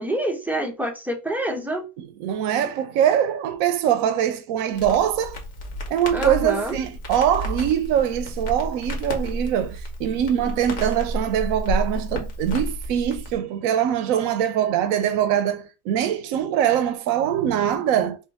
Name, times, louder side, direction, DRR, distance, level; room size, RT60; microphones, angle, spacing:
voice 1, 0.0-1.9 6.1-6.8, right 1 dB, ahead, 0.4 m, -27 dB
voice 2, 2.2-5.4 5.9-18.2, right 10 dB, 80° right, 1.0 m, -23 dB
Crackle, 4.7-13.4, equal, 70° left, 1.4 m, -31 dB
4.4 x 2.5 x 3.4 m
omnidirectional pair, 1.4 m